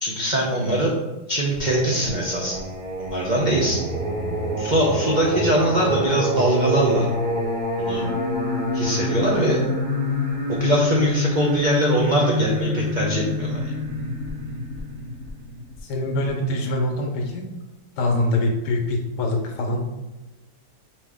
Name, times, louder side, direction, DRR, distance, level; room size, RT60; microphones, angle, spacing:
voice 1, 0.0-0.9 1.3-2.6 3.0-3.8 4.6-7.1 7.8-8.0 8.7-9.6 10.5-13.7, right 1 dB, 75° right, -3 dB, 0.4 m, -22 dB
Singing, 1.6-16.3, left 2 dB, 40° right, 0.9 m, -26 dB
voice 2, 15.9-17.4 18.0-19.8, left 1 dB, 80° left, 2 dB, 1.4 m, -24 dB
5.1 x 2.7 x 3.5 m, 1.1 s
omnidirectional pair, 1.8 m